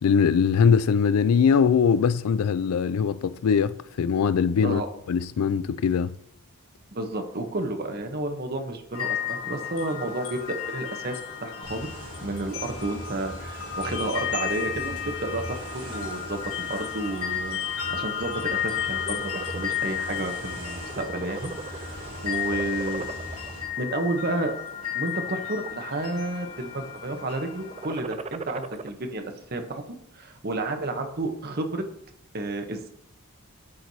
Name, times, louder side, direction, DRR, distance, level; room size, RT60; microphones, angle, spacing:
voice 1, 0.0-4.8 5.1-6.1, left 6 dB, 90° left, 0.4 m, -21 dB
voice 2, 6.9-11.9 12.2-23.1 23.8-24.5 24.9-31.8 32.3-32.9, right 2 dB, 45° right, 0.9 m, -31 dB
sound 1, 8.9-28.0, left 9 dB, 70° left, 1.4 m, -33 dB
sound 2, 11.6-23.6, right 1 dB, 85° right, 2.7 m, -41 dB
sound 3, 18.8-19.8 20.2-20.5 20.8-22.0 22.4-23.5 24.1-24.6 25.2-26.0 26.2-26.8 27.6-28.9, right 4 dB, 30° right, 0.3 m, -38 dB
13.5 x 4.6 x 2.7 m
head